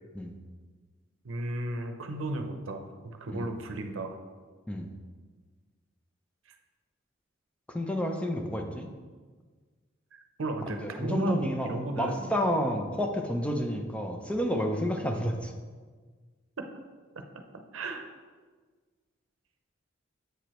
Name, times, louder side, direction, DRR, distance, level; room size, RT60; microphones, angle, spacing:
voice 1, 1.2-2.9 3.2-4.2 10.4-12.3 16.6-16.7 17.7-18.1, right 2 dB, 85° right, 5 dB, 0.6 m, -34 dB
voice 2, 7.7-8.9 10.8-15.5, equal, 5° left, 3 dB, 0.5 m, -30 dB
8.0 x 4.8 x 3.0 m, 1.5 s
head